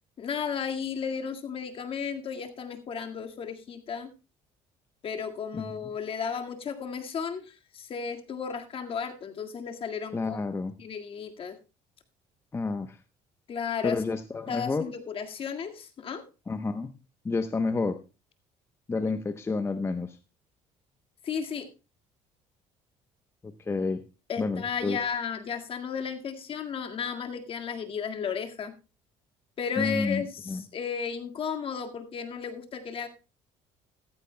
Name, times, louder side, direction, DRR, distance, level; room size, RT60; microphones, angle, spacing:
voice 1, 0.2-4.1 5.0-10.4 10.8-11.6 13.5-14.0 14.5-16.2 21.2-21.7 24.3-28.7 29.6-33.1, left 6 dB, 45° left, 5 dB, 1.9 m, -34 dB
voice 2, 10.1-10.8 12.5-13.0 13.8-14.9 16.5-16.9 17.2-18.0 18.9-20.2 23.4-24.0 24.4-25.1 29.8-30.6, left 3 dB, 20° left, 9 dB, 0.8 m, -30 dB
14.5 x 14.5 x 2.2 m, 0.30 s
cardioid pair, 110°, 13 cm